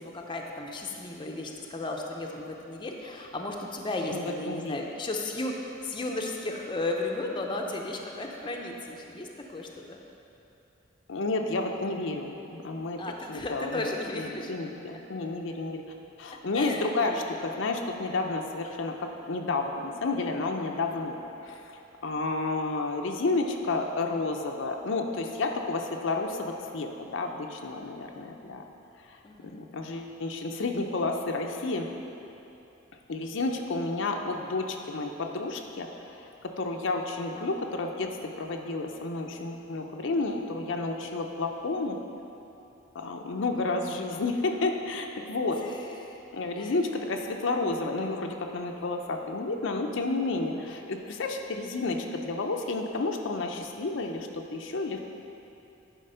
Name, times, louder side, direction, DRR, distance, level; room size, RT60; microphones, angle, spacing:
voice 1, 0.0-10.0 13.0-14.5 14.9-15.0 16.5-17.4 29.2-29.6 45.4-46.2 46.6-46.7, left 2 dB, 25° left, 1 dB, 0.6 m, -35 dB
voice 2, 4.1-4.8 11.1-13.0 13.3-15.8 16.2-28.6 29.1-29.2 29.5-31.9 33.1-42.0 42.9-45.6 46.3-55.0, left 3 dB, 70° left, 3 dB, 0.6 m, -31 dB
10.0 x 4.5 x 5.6 m, 2.9 s
head